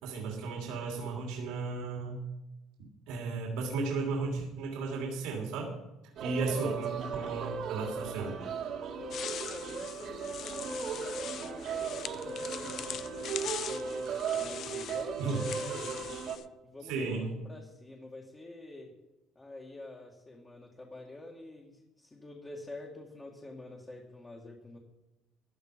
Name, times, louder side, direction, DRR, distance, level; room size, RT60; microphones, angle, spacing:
voice 1, 0.0-2.3 3.1-5.7 6.2-8.4 15.2-15.5 16.9-17.3, right 4 dB, 85° right, -1 dB, 3.1 m, -34 dB
sound 1, 6.2-16.4, right 5 dB, 60° right, 1.9 m, -37 dB
sound 2, 9.1-16.4, left 10 dB, 55° left, 0.5 m, -42 dB
voice 2, 9.5-16.1 16.6-18.9 19.4-24.8, left 2 dB, 20° left, -2 dB, 2.0 m, -47 dB
14.5 x 10.0 x 5.2 m, 0.97 s
cardioid pair, 120°, 0 cm